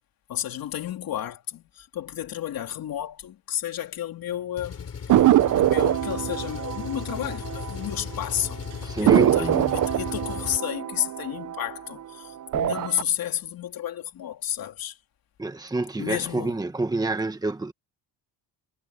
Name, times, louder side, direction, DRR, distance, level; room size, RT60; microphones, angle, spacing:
voice 1, 0.3-5.2 5.6-15.0 16.0-16.6, left 11 dB, 60° left, 3.6 m, -32 dB
sound 1, 3.6-9.4, right 14 dB, 85° right, 6.4 m, -57 dB
Engine, 4.6-10.6, left 7 dB, 35° left, 4.3 m, -37 dB
sound 2, 5.1-8.2 8.4-8.5 9.1-12.0 12.4-13.0, right 12 dB, 50° right, 0.7 m, -23 dB
voice 2, 8.8-9.8 15.4-17.7, right 2 dB, 10° right, 1.5 m, -28 dB
cardioid pair, 165°, 40 cm